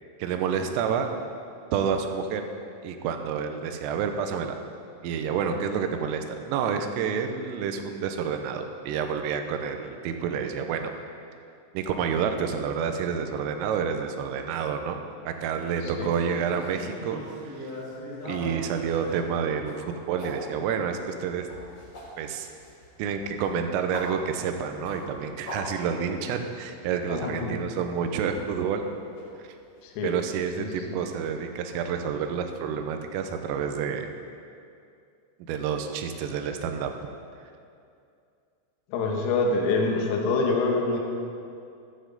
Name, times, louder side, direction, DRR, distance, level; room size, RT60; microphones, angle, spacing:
voice 1, 0.2-1.1 1.7-2.4 2.8-4.6 5.0-10.9 11.7-15.0 15.3-17.7 18.2-19.8 20.1-21.5 22.2-22.5 23.0-28.9 29.4-29.5 30.0-34.1 35.5-36.9, right 7 dB, 85° right, 6 dB, 3.4 m, -29 dB
sound 1, 16.0-20.3 20.9-26.2 26.6-26.7 27.1-27.3 28.2-28.9 29.1-29.2 29.7-29.8 31.1-31.2, left 1 dB, 45° left, 5.1 m, -41 dB
voice 2, 27.1-27.6 29.8-30.2 30.6-31.0 38.9-41.0, left 3 dB, 80° left, 1 dB, 4.0 m, -26 dB
14.5 x 12.0 x 4.0 m, 2.4 s
omnidirectional pair, 5.9 m